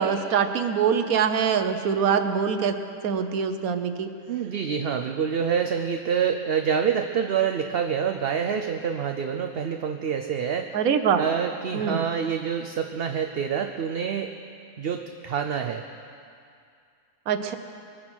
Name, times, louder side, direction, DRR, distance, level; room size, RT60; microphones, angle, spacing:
voice 1, 0.0-2.8 3.0-4.1 10.7-11.3 11.7-12.0 17.3-17.5, right 7 dB, 75° right, 8 dB, 1.4 m, -24 dB
voice 2, 4.3-10.8 11.2-14.3 14.8-15.8, right 7 dB, 55° right, 5 dB, 0.7 m, -27 dB
22.5 x 9.9 x 6.2 m, 2.4 s
omnidirectional pair, 1.5 m